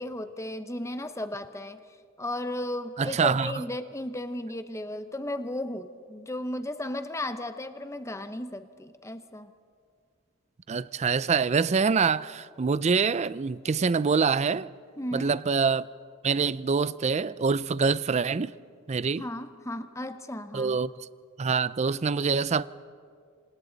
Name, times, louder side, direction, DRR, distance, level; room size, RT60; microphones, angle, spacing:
voice 1, 0.0-1.8 2.2-9.5 15.0-15.3 19.2-20.8, left 1 dB, 15° left, 0.9 m, -35 dB
voice 2, 3.0-3.5 10.7-14.7 15.1-15.8 16.2-18.5 18.9-19.2 20.5-20.9 21.4-22.7, right 5 dB, 35° right, 0.4 m, -25 dB
27.5 x 27.0 x 4.0 m
head